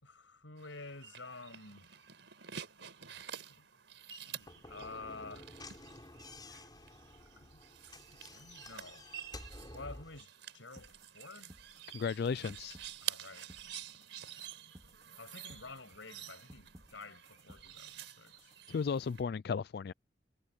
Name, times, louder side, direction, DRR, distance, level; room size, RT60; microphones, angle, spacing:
voice 1, 0.0-1.9 3.1-3.2 3.5-3.7 4.2-5.5 7.4-7.6 8.1-9.1 9.7-11.5 13.0-13.5 15.2-18.5 19.1-19.2, left 3 dB, 85° left, 7.3 m, -50 dB
sound 1, 0.6-19.2, right 10 dB, 80° right, 4.2 m, -49 dB
Slam / Knock, 4.4-10.2, left 2 dB, 20° left, 5.7 m, -51 dB
sound 2, 10.8-18.7, right 1 dB, 20° right, 3.9 m, -60 dB
voice 2, 11.9-12.8 18.7-19.9, left 5 dB, 55° left, 0.3 m, -34 dB
head